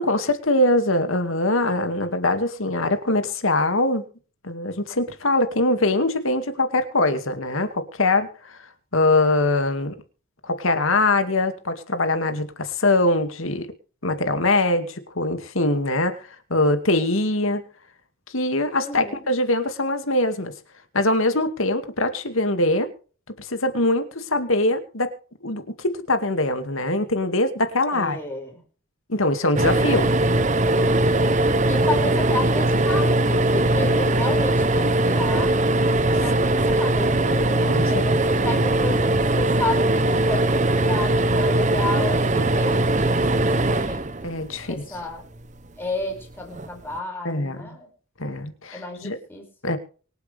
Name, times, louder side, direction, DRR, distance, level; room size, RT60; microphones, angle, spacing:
voice 1, 0.0-4.0 4.4-8.6 8.9-9.9 10.4-13.7 14.0-16.2 16.5-17.6 18.3-20.5 20.9-22.9 23.4-25.1 25.4-28.2 29.1-30.1 37.6-37.8 38.4-38.6 44.2-44.8 47.2-47.8 48.2-49.2 49.6-49.8, left 2 dB, 75° left, 8 dB, 2.3 m, -22 dB
voice 2, 18.8-19.3 27.9-28.6 31.7-35.6 36.2-44.0 44.7-45.3 45.8-47.9 48.7-49.5, left 2 dB, 10° left, 0 dB, 5.3 m, -32 dB
sound 1, 29.6-44.8 46.5-46.7 47.0-47.1, right 1 dB, 35° right, 0.9 m, -20 dB
24.5 x 8.3 x 3.5 m, 0.39 s
head